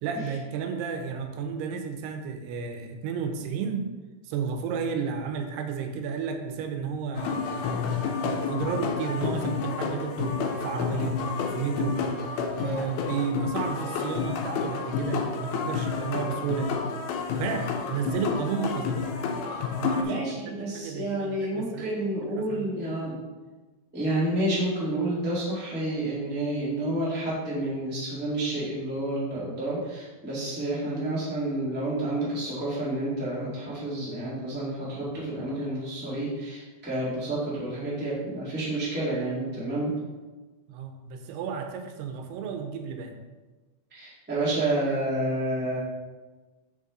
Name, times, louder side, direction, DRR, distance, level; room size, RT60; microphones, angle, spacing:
voice 1, 0.0-3.9 4.2-11.2 11.5-12.0 12.6-16.8 17.4-19.2 19.8-22.0 22.4-22.7 40.7-43.1, right 6 dB, 90° right, 6 dB, 2.7 m, -32 dB
sound 1, 7.2-20.0, left 5 dB, 80° left, 2.4 m, -30 dB
voice 2, 20.0-23.2 23.9-39.9 43.9-45.8, right 1 dB, 5° right, -8 dB, 1.1 m, -29 dB
6.3 x 6.1 x 3.9 m, 1.3 s
omnidirectional pair, 4.6 m